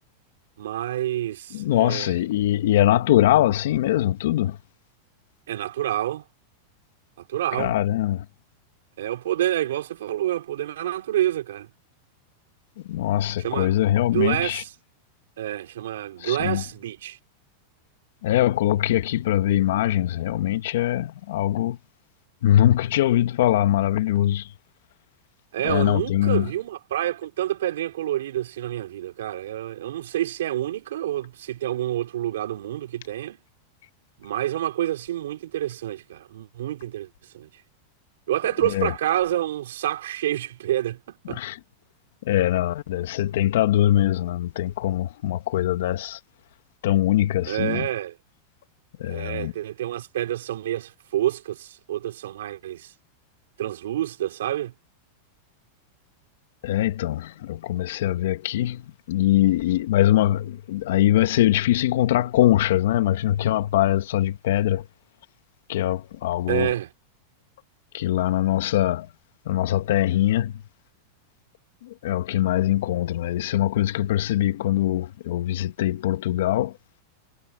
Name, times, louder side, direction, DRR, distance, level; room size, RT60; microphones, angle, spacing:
voice 1, 0.6-2.1 5.5-6.2 7.3-7.8 9.0-11.7 13.4-14.7 15.4-17.2 25.5-33.4 34.2-37.1 37.3-37.5 38.3-41.4 47.5-48.2 49.0-52.9 53.6-54.7 66.5-66.9, right 13 dB, 80° right, 3.9 m, -28 dB
voice 2, 1.5-4.6 7.6-8.2 12.8-14.6 16.2-16.6 18.2-21.8 22.4-24.5 25.6-26.5 38.6-38.9 41.3-41.6 42.2-46.2 46.8-47.9 49.0-49.5 56.6-58.8 59.1-64.8 65.7-66.7 67.9-69.1 69.4-70.6 71.8-76.7, left 13 dB, 75° left, 1.5 m, -22 dB
hypercardioid pair, 125°, 0 cm